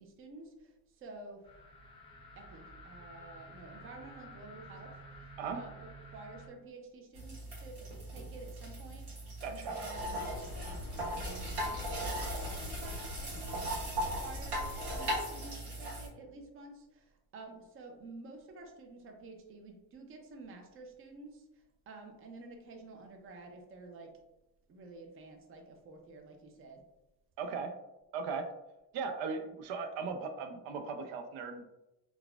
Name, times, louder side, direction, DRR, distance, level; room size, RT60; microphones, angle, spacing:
voice 1, 0.0-1.5 2.4-4.9 5.5-24.1 24.7-26.8, right 3 dB, 30° right, 2 dB, 0.5 m, -51 dB
sound 1, 1.4-6.5, equal, 10° left, 0.7 m, -51 dB
sound 2, 7.1-16.1, right 1 dB, 60° right, 1.2 m, -39 dB
voice 2, 9.4-9.9 27.4-27.7 28.1-28.4 28.9-31.7, right 5 dB, 90° right, 5 dB, 0.6 m, -38 dB
sound 3, 9.9-15.2, left 3 dB, 65° left, 0.5 m, -43 dB
3.9 x 2.3 x 2.3 m, 0.96 s
cardioid pair, 140°, 44 cm